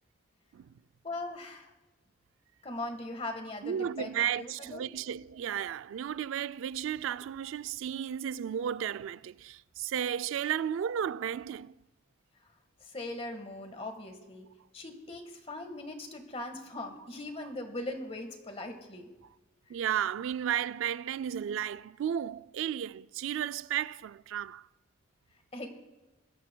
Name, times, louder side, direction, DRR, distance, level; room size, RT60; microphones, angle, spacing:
voice 1, 1.0-1.7 2.6-4.1 4.4-4.9 12.8-14.5 14.7-19.1 25.5-25.7, left 2 dB, 30° left, 1.5 m, -40 dB
voice 2, 3.6-11.8 19.7-24.7, right 9 dB, 75° right, 0.3 m, -33 dB
22.0 x 12.5 x 2.2 m
head